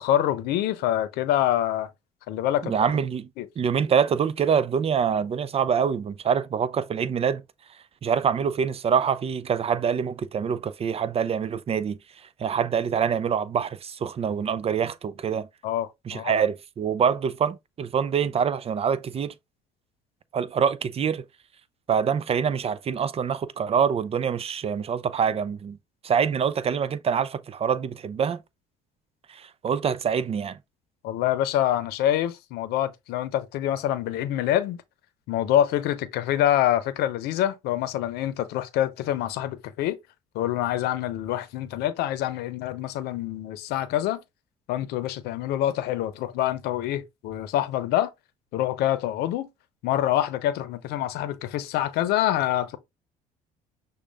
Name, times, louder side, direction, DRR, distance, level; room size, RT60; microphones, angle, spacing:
voice 1, 0.0-1.9 2.3-2.9 3.4-3.5 15.6-16.3 31.0-34.8 35.3-40.0 40.3-44.2 44.7-48.1 48.5-49.5 49.8-52.8, left 12 dB, 80° left, 0.7 m, -26 dB
voice 2, 2.6-3.3 3.6-7.4 8.0-12.0 12.4-15.5 16.1-19.3 20.3-21.2 21.9-25.8 26.0-28.4 29.3-30.6, right 7 dB, 40° right, 0.6 m, -25 dB
6.3 x 2.4 x 3.4 m
supercardioid pair, 85°, 16 cm